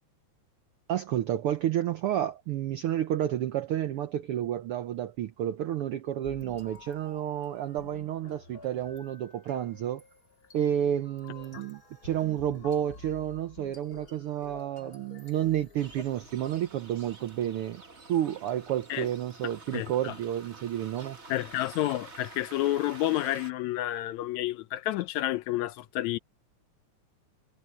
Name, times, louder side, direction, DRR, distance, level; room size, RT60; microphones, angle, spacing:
voice 1, 0.9-10.0 10.5-17.8 18.1-21.2, right 11 dB, 85° right, 1.2 m, -30 dB
sound 1, 6.2-16.5, left 3 dB, 30° left, 5.2 m, -50 dB
sound 2, 15.8-23.5, right 3 dB, 30° right, 1.5 m, -49 dB
voice 2, 19.7-20.1 21.3-26.2, left 14 dB, 80° left, 1.8 m, -30 dB
omnidirectional pair, 3.5 m